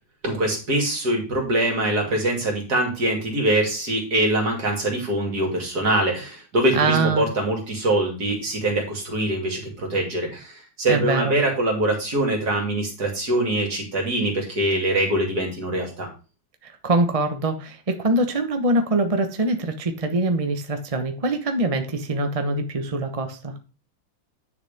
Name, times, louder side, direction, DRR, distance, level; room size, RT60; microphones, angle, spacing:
voice 1, 0.2-16.1, right 1 dB, 50° right, 1 dB, 3.4 m, -23 dB
voice 2, 6.7-7.3 10.9-11.3 16.8-23.5, right 2 dB, 25° right, 6 dB, 0.8 m, -23 dB
10.5 x 6.9 x 3.5 m, 0.33 s
omnidirectional pair, 2.2 m